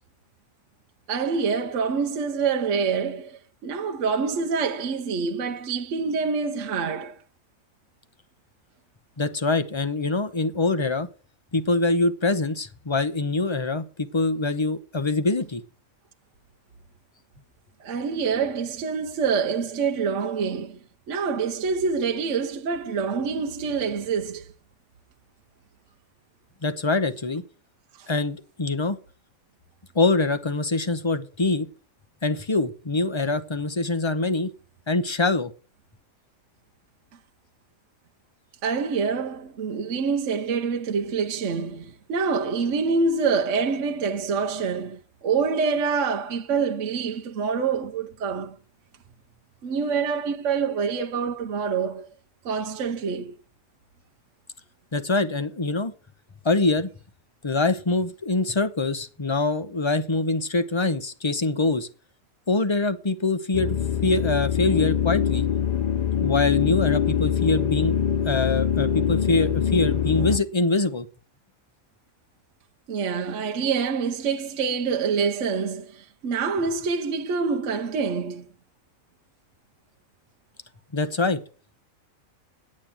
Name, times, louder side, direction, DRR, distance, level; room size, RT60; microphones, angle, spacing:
voice 1, 1.1-7.2 17.8-20.8 21.1-24.5 27.9-28.1 38.6-48.6 49.6-52.1 52.4-53.3 72.9-78.5, right 5 dB, 65° right, 1.2 m, -26 dB
voice 2, 9.2-11.1 11.5-15.6 26.6-27.4 28.1-29.0 29.9-31.7 32.2-34.5 34.9-35.5 54.9-55.9 56.4-56.9 57.4-61.9 62.5-63.8 64.0-65.4 66.2-67.9 68.2-71.1 80.9-81.4, left 3 dB, 25° left, 0.9 m, -24 dB
sound 1, 63.5-70.4, left 8 dB, 45° left, 0.6 m, -24 dB
9.6 x 8.7 x 7.5 m
omnidirectional pair, 1.4 m